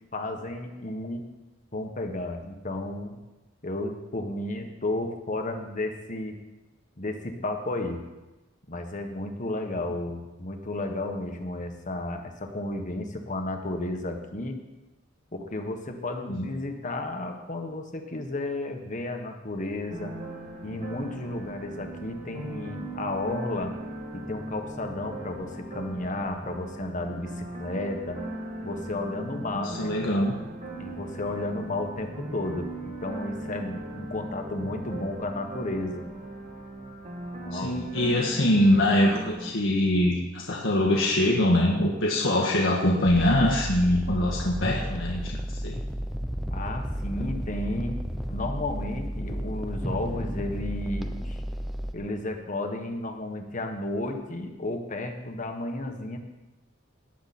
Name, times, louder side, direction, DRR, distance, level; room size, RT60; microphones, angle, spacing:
voice 1, 0.1-1.3 1.7-3.2 3.6-6.4 7.0-8.0 8.7-14.6 15.3-20.1 20.6-23.8 24.1-28.2 28.6-29.9 30.8-36.1 37.4-37.8 46.5-47.9 48.3-51.4 51.9-56.2, left 2 dB, 40° left, 4 dB, 1.5 m, -33 dB
sound 1, 19.9-39.5, right 1 dB, 40° right, 2.4 m, -39 dB
voice 2, 29.5-30.4 37.5-45.8, left 1 dB, 70° left, -1 dB, 1.7 m, -23 dB
sound 2, 43.1-51.9, equal, ahead, 0.7 m, -33 dB
18.5 x 10.0 x 4.4 m, 1.1 s
head